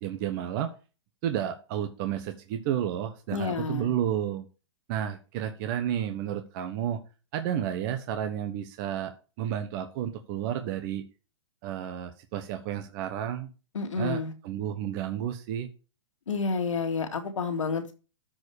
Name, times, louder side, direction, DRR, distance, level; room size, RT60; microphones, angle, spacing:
voice 1, 0.0-0.7 1.2-4.5 4.9-7.0 7.3-11.0 11.6-13.5 13.9-15.7, right 10 dB, 40° right, 1.2 m, -31 dB
voice 2, 3.3-3.9 13.7-14.3 16.3-17.9, left 4 dB, 85° left, 2.3 m, -29 dB
13.5 x 4.9 x 4.8 m
hypercardioid pair, 135°, 16 cm